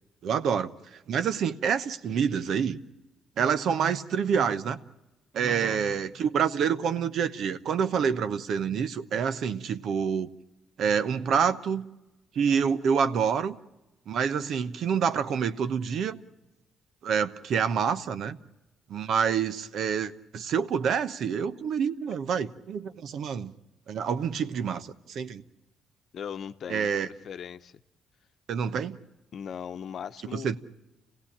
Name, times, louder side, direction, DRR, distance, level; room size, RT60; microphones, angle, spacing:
voice 1, 0.2-2.8 3.4-4.8 5.3-10.3 10.8-11.9 12.3-13.6 14.1-16.2 17.0-18.4 18.9-23.5 23.9-25.4 26.7-27.1 28.5-29.0 30.3-30.6, right 7 dB, 70° right, 1.0 m, -27 dB
voice 2, 5.4-5.8 26.1-27.7 29.3-30.6, left 8 dB, 60° left, 0.9 m, -39 dB
27.5 x 16.5 x 8.6 m
cardioid pair, 90°, 0 cm